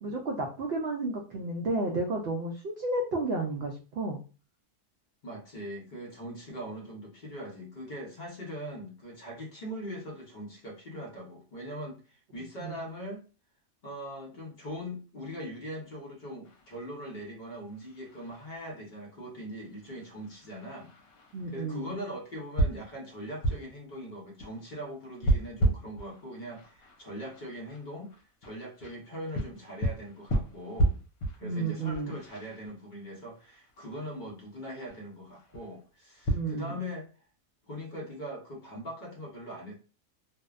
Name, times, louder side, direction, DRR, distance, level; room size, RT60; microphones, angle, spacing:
voice 1, 0.0-4.2 12.6-12.8 21.3-21.9 31.4-32.1 36.3-36.8, right 2 dB, 80° right, 1 dB, 0.5 m, -32 dB
voice 2, 5.2-13.2 13.8-20.9 21.5-28.1 28.4-31.0 31.3-37.1 37.7-39.7, equal, 45° left, -1 dB, 0.6 m, -41 dB
sound 1, 16.4-36.4, right 1 dB, 80° left, 1.1 m, -34 dB
2.6 x 2.1 x 2.3 m, 0.35 s
omnidirectional pair, 1.6 m